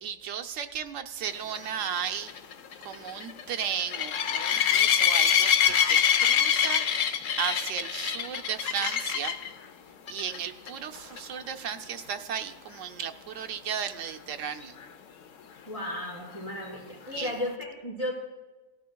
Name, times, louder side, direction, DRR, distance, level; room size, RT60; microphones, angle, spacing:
voice 1, 0.0-2.3 2.8-6.8 7.4-9.4 10.1-14.7 17.2-17.4, right 8 dB, 90° right, 7 dB, 1.1 m, -35 dB
sound 1, 1.5-9.5 10.1-10.4 10.7-10.8 11.2-11.3 14.8-14.9, left 8 dB, 85° left, 1.1 m, -25 dB
voice 2, 15.7-18.1, left 1 dB, 30° left, -6 dB, 4.4 m, -34 dB
18.0 x 13.0 x 2.3 m, 1.2 s
omnidirectional pair, 1.3 m